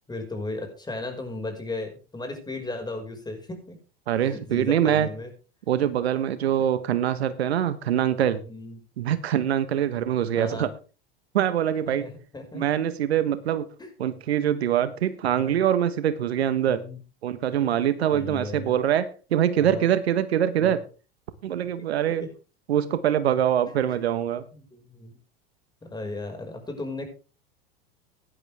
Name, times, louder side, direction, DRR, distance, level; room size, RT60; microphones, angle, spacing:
voice 1, 0.1-3.8 4.2-5.3 8.5-8.8 9.9-10.1 10.3-10.7 12.0-12.6 13.8-13.9 15.0-15.1 15.4-15.6 16.6-17.0 17.6-17.7 18.1-18.7 19.6-19.9 20.6-20.8 21.9-22.0 24.5-25.1 25.8-27.1, left 2 dB, 15° left, 3 dB, 5.6 m, -36 dB
voice 2, 4.1-5.1 5.7-8.4 9.0-10.7 11.3-12.1 12.5-13.7 14.0-16.8 17.2-20.8 21.4-22.2 22.7-24.4, right 10 dB, 80° right, 13 dB, 1.3 m, -24 dB
16.5 x 11.0 x 3.5 m, 0.34 s
hypercardioid pair, 90°, 31 cm